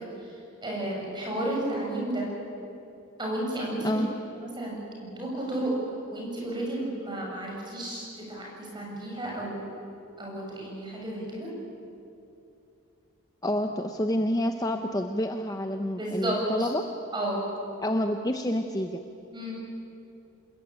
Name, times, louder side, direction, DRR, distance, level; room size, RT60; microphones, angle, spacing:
voice 1, 0.6-2.3 3.2-4.0 4.4-5.7 6.1-9.7 10.2-11.5 16.0-16.7 17.1-17.4 19.3-19.5, right 1 dB, 20° right, -2 dB, 7.5 m, -32 dB
voice 2, 13.4-16.9 17.8-19.0, left 1 dB, 15° left, 5 dB, 0.8 m, -28 dB
27.0 x 21.0 x 9.0 m, 2.7 s
head